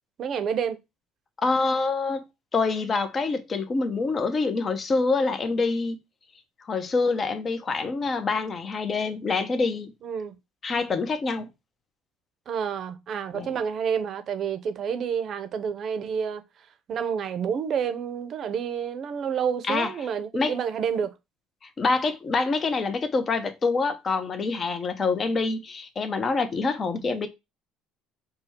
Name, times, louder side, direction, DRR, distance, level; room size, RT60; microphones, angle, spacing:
voice 1, 0.2-0.8 10.0-10.4 12.5-16.4 16.9-21.1, right 7 dB, 50° right, 0.7 m, -29 dB
voice 2, 1.4-2.2 2.5-6.0 6.6-9.9 10.6-11.5 13.3-13.5 19.7-19.9 20.3-20.6 21.8-27.3, left 4 dB, 35° left, 0.8 m, -26 dB
5.2 x 2.3 x 4.4 m
cardioid pair, 105°, 0 cm